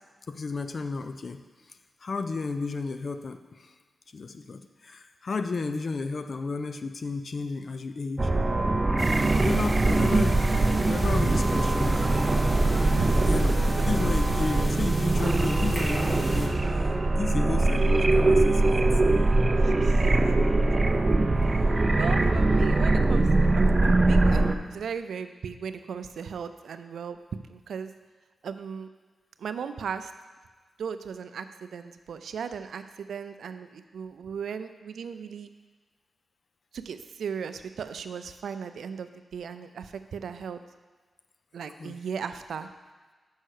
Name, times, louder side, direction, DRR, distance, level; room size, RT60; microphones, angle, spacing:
voice 1, 0.3-1.4 1.7-3.7 4.1-8.3 9.3-12.3 13.3-16.6 17.2-18.9 21.4-21.5 41.8-42.0, left 4 dB, 55° left, 8 dB, 0.5 m, -33 dB
sound 1, 8.2-24.6, right 2 dB, 30° right, 0.5 m, -22 dB
sound 2, 9.0-16.5, equal, 10° left, 1.3 m, -34 dB
voice 2, 12.6-13.3 19.6-20.3 22.0-27.2 27.5-27.9 28.4-28.9 29.4-30.1 30.8-35.5 36.7-40.6 41.5-42.7, right 6 dB, 85° right, 10 dB, 0.4 m, -37 dB
6.4 x 5.5 x 6.5 m, 1.4 s
cardioid pair, 85°, 0 cm